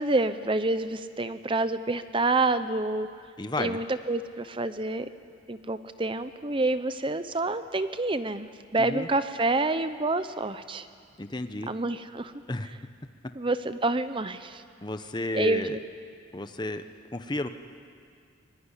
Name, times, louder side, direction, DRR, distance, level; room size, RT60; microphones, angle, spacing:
voice 1, 0.0-3.1 3.6-5.1 5.5-10.9 11.7-12.3 13.3-14.6 15.3-15.8, right 2 dB, 25° right, 11 dB, 0.7 m, -28 dB
voice 2, 3.4-3.8 8.8-9.1 11.2-11.7 12.5-12.7 14.8-15.8 16.3-16.8 17.1-17.5, left 2 dB, 20° left, 8 dB, 0.9 m, -32 dB
24.5 x 20.5 x 9.9 m, 2.2 s
head